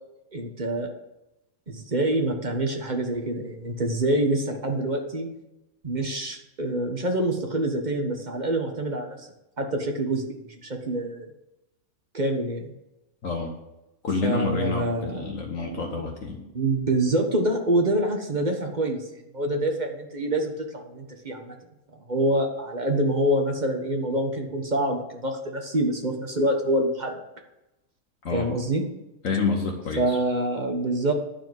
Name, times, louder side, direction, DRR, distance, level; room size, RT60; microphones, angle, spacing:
voice 1, 0.3-0.9 1.7-5.3 5.8-9.3 9.6-11.3 12.1-12.7 14.2-15.3 15.6-15.9 16.5-19.0 19.3-21.6 22.1-27.2 28.3-28.8 30.0-31.1, right 1 dB, 30° right, 3 dB, 1.5 m, -26 dB
voice 2, 14.0-16.4 28.2-28.5 29.2-30.2, left 4 dB, 65° left, 1 dB, 1.5 m, -28 dB
11.0 x 4.9 x 7.8 m, 0.92 s
omnidirectional pair, 1.5 m